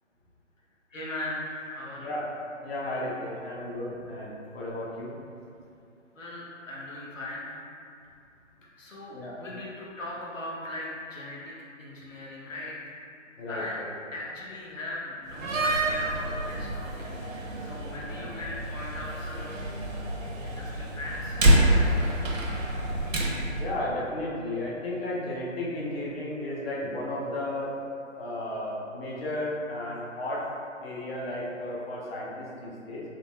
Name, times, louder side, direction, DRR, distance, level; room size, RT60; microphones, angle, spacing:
voice 1, 0.9-2.1 6.1-7.7 8.8-11.5 11.8-12.8 13.5-13.8 14.1-19.7 20.4-22.2, left 1 dB, 75° left, -5 dB, 1.0 m, -39 dB
voice 2, 2.0-2.3 2.6-5.1 9.1-9.4 13.4-13.9 18.2-18.3 23.6-27.7 28.2-30.4 30.8-33.0, left 1 dB, 50° left, -5 dB, 0.7 m, -34 dB
Slam, 15.3-23.7, right 1 dB, 85° right, 0.7 m, -27 dB
3.9 x 3.2 x 2.3 m, 2.6 s
figure-of-eight pair, 150°, 39 cm